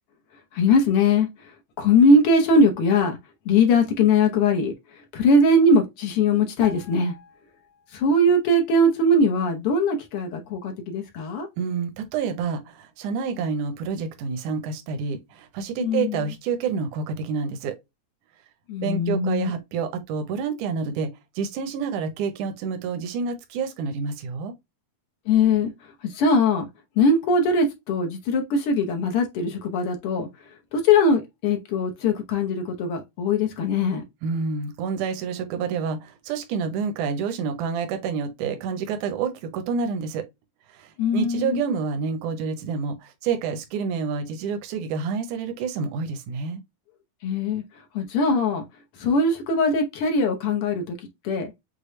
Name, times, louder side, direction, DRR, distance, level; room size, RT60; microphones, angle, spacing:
voice 1, 0.5-1.3 1.8-3.2 3.5-4.7 5.1-7.1 7.9-11.5 15.8-16.2 18.7-19.5 25.3-25.7 26.0-26.7 27.0-30.3 30.7-34.0 41.0-41.6 47.2-47.6 47.9-48.6 49.0-51.0 51.2-51.5, left 2 dB, 70° left, 1.3 m, -21 dB
sound 1, 6.6-8.3 8.5-8.7, left 7 dB, 50° left, 1.4 m, -43 dB
voice 2, 11.6-17.8 18.8-24.5 34.2-40.3 40.7-46.6, right 5 dB, 80° right, 2.2 m, -28 dB
6.5 x 2.2 x 3.1 m
omnidirectional pair, 3.5 m